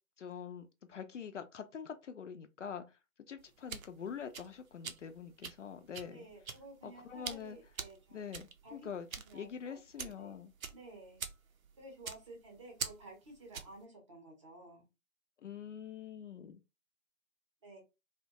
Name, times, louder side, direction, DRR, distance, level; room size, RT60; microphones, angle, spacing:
voice 1, 0.2-3.0 3.3-6.3 6.8-7.6 8.1-9.1 9.3-10.5 15.4-16.6, left 7 dB, 60° left, 0.5 m, -45 dB
sound 1, 3.4-13.8, right 6 dB, 75° right, 0.6 m, -46 dB
voice 2, 6.1-8.3 8.6-8.8 9.3-10.4 10.7-11.2 11.8-14.8 17.6-17.8, right 2 dB, 20° right, 0.7 m, -53 dB
2.7 x 2.1 x 2.8 m
figure-of-eight pair, 145°, 42 cm